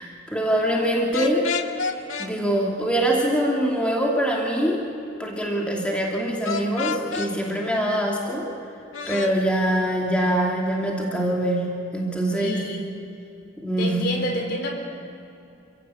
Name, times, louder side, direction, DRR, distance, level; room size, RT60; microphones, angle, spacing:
voice 1, 0.0-1.5 2.2-4.9 5.2-8.5 9.1-12.7 13.6-14.1, right 1 dB, 5° left, -2 dB, 2.7 m, -24 dB
sound 1, 1.1-2.3 6.4-7.3 8.9-9.3, left 5 dB, 85° left, 1.8 m, -28 dB
voice 2, 12.4-13.0 13.8-14.7, left 1 dB, 55° left, 3 dB, 4.1 m, -29 dB
28.0 x 16.5 x 8.3 m, 2.8 s
head